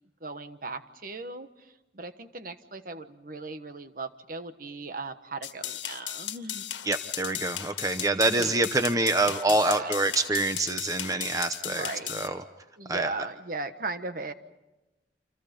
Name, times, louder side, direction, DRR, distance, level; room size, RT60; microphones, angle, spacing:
voice 1, 0.2-6.6 8.4-8.6 9.5-10.0 11.2-12.1 12.8-14.3, right 3 dB, 50° right, 9 dB, 1.3 m, -38 dB
sound 1, 5.4-12.3, left 11 dB, 85° left, 1.6 m, -36 dB
voice 2, 6.8-12.4 12.9-13.1, right 2 dB, 20° right, 8 dB, 0.8 m, -26 dB
29.0 x 27.0 x 5.4 m, 1.0 s
head